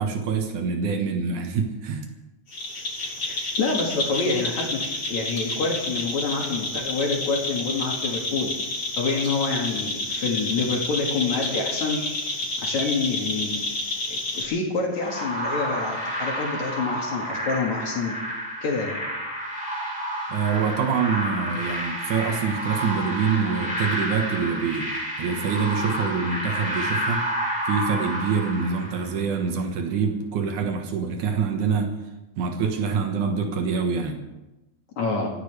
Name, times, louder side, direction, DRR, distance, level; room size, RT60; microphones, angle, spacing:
voice 1, 0.0-2.1 20.3-24.9 25.2-27.3 27.7-31.9 32.4-34.2, right 5 dB, 90° right, 4 dB, 2.9 m, -25 dB
sound 1, 2.5-14.4, left 2 dB, 45° left, 4.3 m, -29 dB
voice 2, 3.0-8.5 9.0-12.0 12.6-13.6 14.1-18.1 18.6-19.0 35.0-35.3, left 4 dB, 70° left, -1 dB, 3.4 m, -27 dB
sound 2, 15.0-29.3, equal, ahead, 6.5 m, -30 dB
25.5 x 15.0 x 3.4 m, 1.0 s
omnidirectional pair, 3.3 m